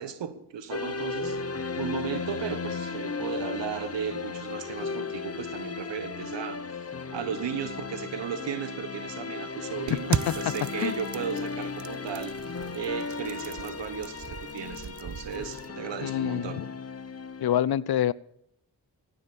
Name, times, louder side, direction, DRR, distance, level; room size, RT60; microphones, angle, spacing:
voice 1, 0.0-1.4 1.8-16.6, right 8 dB, 85° right, 12 dB, 1.2 m, -35 dB
Emotional Orchestra (Korean Drama), 0.7-17.6, left 4 dB, 35° left, 1.2 m, -36 dB
sound 1, 9.9-15.7, right 7 dB, 45° right, 0.7 m, -37 dB
voice 2, 16.0-16.7 17.4-18.1, left 11 dB, 60° left, 21 dB, 0.6 m, -26 dB
16.0 x 8.1 x 7.0 m, 0.76 s
cardioid pair, 45°, 42 cm